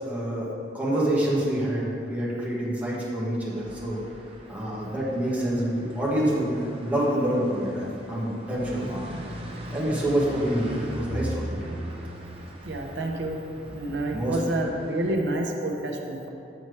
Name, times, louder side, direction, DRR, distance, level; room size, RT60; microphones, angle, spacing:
voice 1, 0.1-0.5 0.7-4.0 4.5-9.2 9.7-11.8 14.1-14.4, right 1 dB, 10° right, -7 dB, 1.4 m, -27 dB
sound 1, 3.5-15.1, equal, 35° right, 0.8 m, -39 dB
voice 2, 12.6-13.4 13.6-16.3, right 1 dB, 75° right, 1 dB, 0.8 m, -29 dB
7.7 x 4.3 x 4.7 m, 2.6 s
head